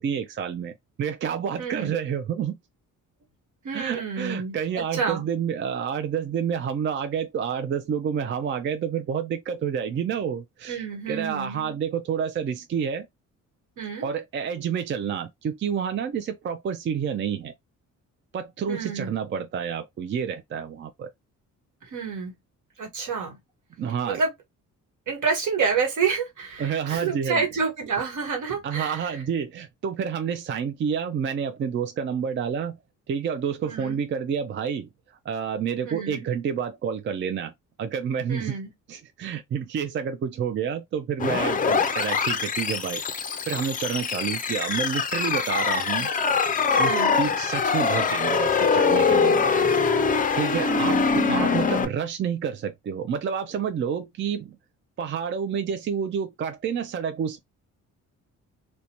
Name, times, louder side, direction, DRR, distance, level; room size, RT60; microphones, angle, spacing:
voice 1, 0.0-2.6 3.7-13.1 14.0-17.5 18.3-21.1 23.8-24.2 26.6-27.4 28.6-32.8 33.1-34.9 35.3-37.5 37.8-38.6 38.9-43.0 43.5-46.1 46.8-49.7 50.3-54.6 55.0-57.4, right 7 dB, 40° right, 0.4 m, -29 dB
voice 2, 1.6-1.9 3.6-5.2 10.7-11.8 13.8-14.1 18.7-19.1 21.8-22.3 22.8-23.4 24.0-24.3 25.1-29.2 33.6-34.0 35.9-36.2 38.3-38.7 46.8-47.2 50.5-51.5, right 5 dB, 70° right, 1.3 m, -29 dB
sound 1, 41.2-51.8, left 5 dB, 25° left, 0.4 m, -23 dB
2.6 x 2.2 x 2.9 m
cardioid pair, 110°, 32 cm